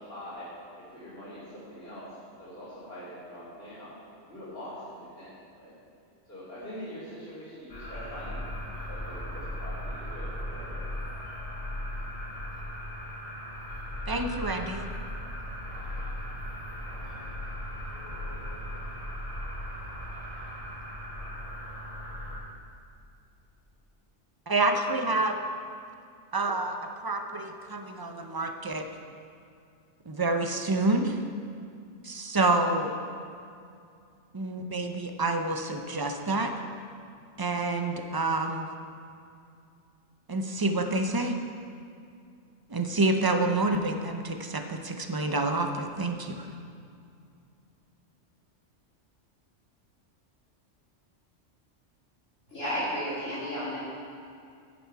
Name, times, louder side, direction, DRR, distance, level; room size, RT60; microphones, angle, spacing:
voice 1, 0.0-3.9 4.3-5.3 5.6-5.7 6.3-8.5 8.9-10.9, equal, 55° left, -14 dB, 3.4 m, -43 dB
sound 1, 7.7-22.4, left 1 dB, 30° left, 2.3 m, -37 dB
voice 2, 14.1-14.9 24.5-25.4 26.3-28.9 30.1-31.2 32.0-33.0 34.3-36.5 37.4-38.7 40.3-41.4 42.7-46.5, right 2 dB, 30° right, 5 dB, 0.4 m, -28 dB
voice 3, 52.5-53.8, equal, 90° left, -15 dB, 3.5 m, -32 dB
10.5 x 9.2 x 4.7 m, 2.4 s
omnidirectional pair, 1.3 m